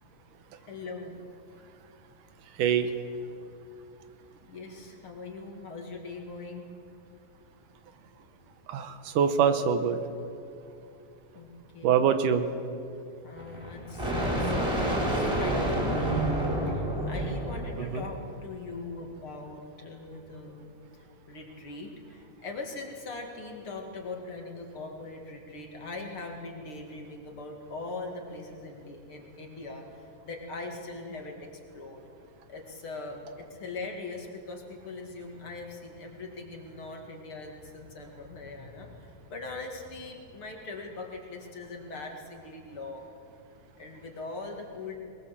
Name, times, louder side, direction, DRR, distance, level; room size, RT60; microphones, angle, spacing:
voice 1, 0.6-1.2 4.5-6.7 11.3-12.1 13.2-16.3 16.7-31.5 31.7-32.0 32.5-43.1 43.8-45.0, left 3 dB, 45° left, 2 dB, 2.6 m, -41 dB
voice 2, 2.6-2.9 8.7-10.0 11.8-12.5 17.9-18.0, right 7 dB, 75° right, 9 dB, 2.5 m, -24 dB
sound 1, 13.4-18.4, right 1 dB, 5° right, 4.0 m, -29 dB
22.0 x 20.5 x 7.5 m, 2.6 s
omnidirectional pair, 3.9 m